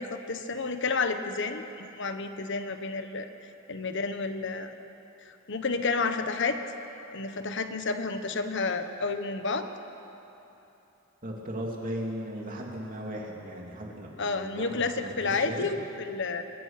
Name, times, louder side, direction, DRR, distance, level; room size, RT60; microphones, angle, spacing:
voice 1, 0.0-3.3 3.7-4.7 5.5-6.6 7.1-9.7 14.2-16.4, left 4 dB, 60° left, 8 dB, 1.2 m, -30 dB
voice 2, 11.2-15.7, equal, 40° right, -1 dB, 3.1 m, -37 dB
23.0 x 21.5 x 5.9 m, 3.0 s
head